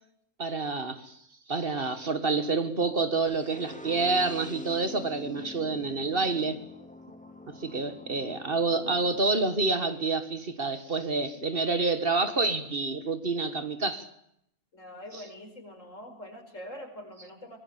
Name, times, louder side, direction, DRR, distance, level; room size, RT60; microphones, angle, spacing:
voice 1, 0.4-1.2 1.5-6.6 7.5-14.1, right 3 dB, 45° right, 1.9 m, -28 dB
sound 1, 3.3-9.2, left 2 dB, 5° left, 2.5 m, -45 dB
voice 2, 14.7-17.6, equal, 75° left, 5.5 m, -44 dB
24.0 x 21.5 x 8.8 m
omnidirectional pair, 1.3 m